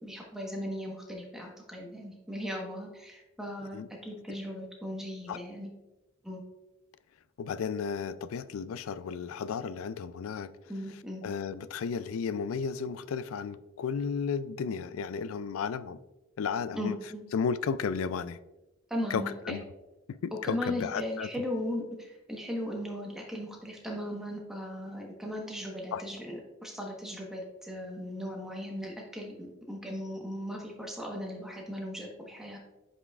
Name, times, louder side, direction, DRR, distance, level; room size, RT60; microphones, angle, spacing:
voice 1, 0.0-5.7 6.2-6.4 10.7-11.2 16.7-17.2 18.9-19.6 20.4-32.6, equal, ahead, -1 dB, 1.1 m, -37 dB
voice 2, 7.4-10.5 11.2-16.0 16.4-17.0 17.3-18.4 19.1-19.6 20.1-21.3 25.9-26.0, left 6 dB, 85° left, 16 dB, 0.3 m, -33 dB
8.1 x 5.4 x 2.4 m, 1.0 s
head